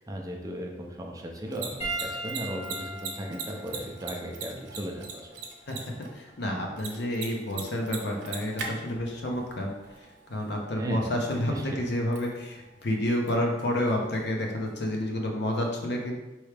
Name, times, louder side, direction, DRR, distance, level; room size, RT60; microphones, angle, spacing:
voice 1, 0.0-5.3 10.7-11.1 11.5-11.8, right 1 dB, 20° right, 0 dB, 0.5 m, -36 dB
Mechanisms, 1.3-14.9, right 4 dB, 90° right, 0.8 m, -43 dB
Piano, 1.8-6.5 7.4-7.6 9.5-9.6, right 2 dB, 35° left, 1.5 m, -40 dB
voice 2, 6.1-9.7 10.3-16.2, left 1 dB, 65° left, 0 dB, 0.8 m, -29 dB
4.6 x 3.1 x 3.3 m, 1.1 s
head